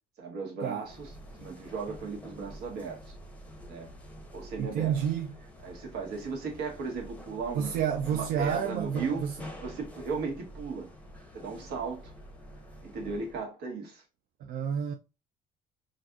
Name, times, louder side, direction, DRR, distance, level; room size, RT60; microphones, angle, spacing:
voice 1, 0.2-1.1 1.4-3.1 3.7-3.9 4.3-5.0 5.6-7.8 8.1-9.2 9.6-10.9 11.3-12.1 12.8-14.0, right 5 dB, 75° right, 1.2 m, -36 dB
sound 1, 0.8-13.5, equal, 10° left, 0.7 m, -47 dB
voice 2, 4.6-5.3 7.5-9.4 14.4-14.9, right 8 dB, 60° right, 0.4 m, -30 dB
3.9 x 2.5 x 2.3 m
cardioid pair, 110°, 17 cm